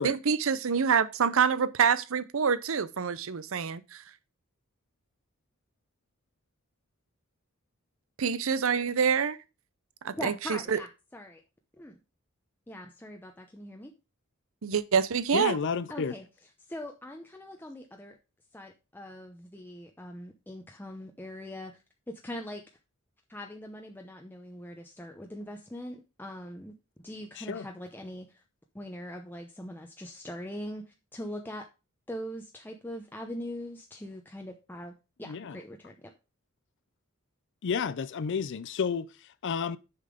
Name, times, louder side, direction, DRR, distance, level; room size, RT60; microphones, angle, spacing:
voice 1, 0.0-4.0 8.2-9.4 10.0-10.8 14.6-15.6, right 6 dB, 70° right, 0.6 m, -26 dB
voice 2, 10.2-10.9 11.1-11.4 11.8-12.0 12.7-13.9 15.9-16.3 16.7-18.2 18.5-21.7 22.1-22.6 23.3-26.7 27.0-28.4 28.7-31.7 32.1-36.1, left 1 dB, 10° left, 0.7 m, -41 dB
voice 3, 15.3-16.1 27.4-27.7 35.2-35.6 37.6-39.8, left 6 dB, 60° left, 0.5 m, -31 dB
6.8 x 5.7 x 5.0 m
head